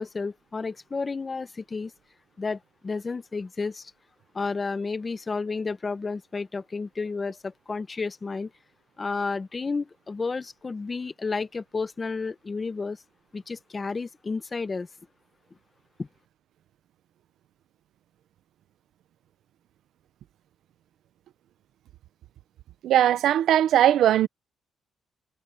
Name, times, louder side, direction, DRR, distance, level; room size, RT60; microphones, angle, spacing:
voice 1, 0.0-1.9 2.4-3.9 4.3-8.5 9.0-13.0 13.3-14.9 16.0-16.1, left 4 dB, 30° left, 1.4 m, -31 dB
voice 2, 22.8-24.3, right 11 dB, 75° right, 1.0 m, -19 dB
cardioid pair, 90°, 0 cm